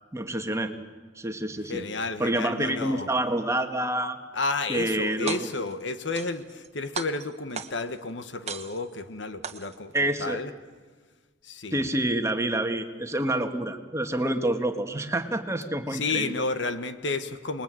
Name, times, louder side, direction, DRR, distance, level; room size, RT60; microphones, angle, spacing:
voice 1, 0.1-0.7 1.1-1.8 2.2-4.2 4.7-5.5 9.9-10.4 11.7-16.3, right 1 dB, 15° right, 6 dB, 1.7 m, -27 dB
voice 2, 1.7-3.1 4.3-9.9 10.2-10.5 11.4-11.9 15.9-17.6, left 3 dB, 65° left, 10 dB, 1.3 m, -31 dB
sound 1, 5.1-5.7 6.1-6.7 6.9-8.0 8.5-9.0 9.4-10.0, right 6 dB, 35° right, 1.2 m, -36 dB
28.0 x 21.0 x 9.1 m, 1.4 s
head